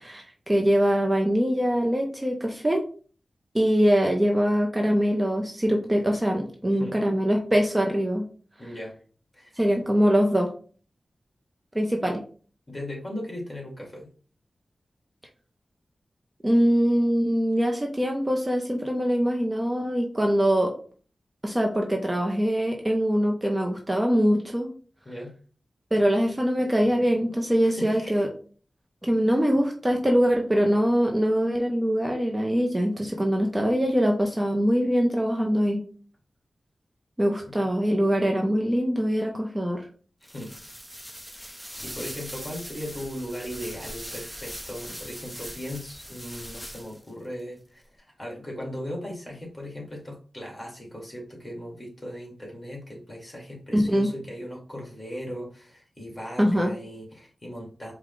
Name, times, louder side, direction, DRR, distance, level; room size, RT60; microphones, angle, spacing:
voice 1, 0.0-2.8 3.5-8.2 9.6-10.5 11.7-12.2 16.4-20.7 21.4-24.7 25.9-28.3 29.0-35.8 37.2-39.9 53.7-54.1 56.4-56.7, equal, 25° right, 2 dB, 0.8 m, -23 dB
voice 2, 8.6-8.9 9.3-9.5 12.7-14.1 25.1-25.4 27.6-28.2 40.2-40.6 41.8-47.8 48.2-57.9, equal, 25° left, -2 dB, 2.3 m, -38 dB
sound 1, 40.2-47.1, equal, 5° right, 1.1 m, -40 dB
4.7 x 2.3 x 3.9 m, 0.41 s
cardioid pair, 50°, 0 cm